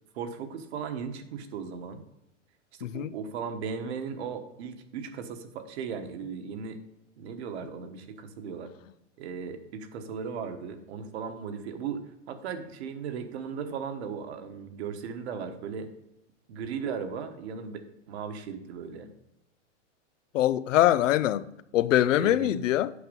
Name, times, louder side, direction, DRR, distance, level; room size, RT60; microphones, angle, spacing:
voice 1, 0.1-2.0 2.8-6.8 7.2-8.7 9.2-15.9 16.5-19.1 22.2-22.6, right 6 dB, 60° right, 1.3 m, -37 dB
voice 2, 2.8-3.1 20.3-21.5 21.7-22.9, left 13 dB, 85° left, 0.6 m, -23 dB
8.6 x 5.9 x 5.3 m
supercardioid pair, 155°, 37 cm